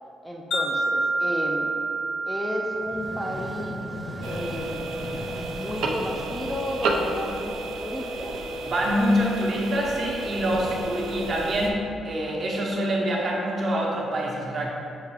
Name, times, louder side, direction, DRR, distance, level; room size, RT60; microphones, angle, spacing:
voice 1, 0.2-1.7 2.2-3.9 4.2-4.9 5.5-8.4, left 1 dB, 5° left, 0 dB, 0.4 m, -33 dB
Wind chime, 0.5-4.8, right 2 dB, 70° left, 0.6 m, -29 dB
sound 1, 2.7-7.2, equal, 10° right, 0.8 m, -38 dB
sound 2, 4.2-11.7, right 2 dB, 80° right, 0.4 m, -31 dB
voice 2, 8.6-14.7, equal, 45° right, -3 dB, 0.8 m, -25 dB
5.8 x 2.4 x 3.3 m, 2.6 s
cardioid pair, 90°, 0 cm